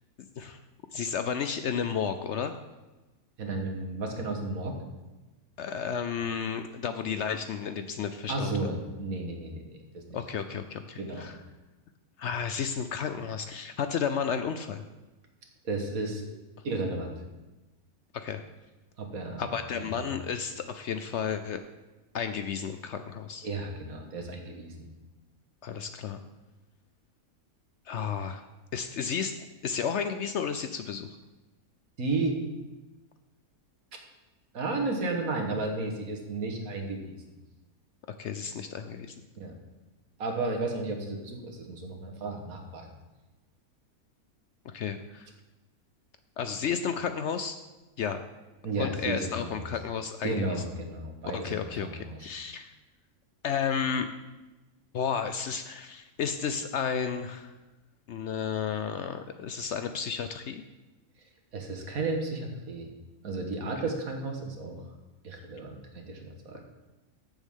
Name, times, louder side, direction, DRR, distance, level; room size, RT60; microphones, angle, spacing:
voice 1, 0.9-2.5 5.6-8.5 10.1-11.4 12.2-14.8 18.1-18.4 19.4-21.6 22.1-23.5 25.6-26.2 27.9-28.5 28.7-29.4 29.6-31.1 38.2-39.2 44.6-45.3 46.4-47.6 48.0-48.2 48.8-50.6 51.3-52.7 53.4-54.1 54.9-57.5 58.1-60.6, left 7 dB, 65° left, 9 dB, 0.7 m, -32 dB
voice 2, 3.4-4.8 8.3-9.6 9.9-10.2 11.0-11.3 15.6-16.2 16.6-17.1 19.0-19.4 19.7-20.2 23.4-24.9 32.0-32.4 34.5-37.4 39.4-39.5 40.2-42.9 48.6-49.7 50.2-52.2 61.5-62.9 63.2-64.8 65.2-66.6, right 3 dB, 75° right, 3 dB, 1.9 m, -33 dB
14.5 x 7.0 x 3.7 m, 1.1 s
omnidirectional pair, 1.5 m